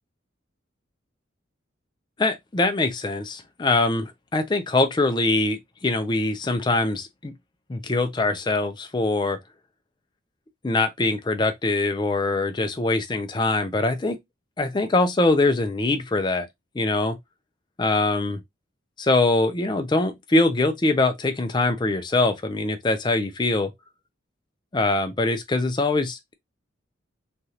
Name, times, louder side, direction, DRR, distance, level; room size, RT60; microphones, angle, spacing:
voice 1, 2.2-7.3 7.7-9.4 10.6-14.2 14.6-16.5 16.8-17.2 17.8-18.4 19.0-23.7 24.7-26.3, left 2 dB, 20° left, 0.4 m, -23 dB
3.2 x 2.4 x 2.8 m
head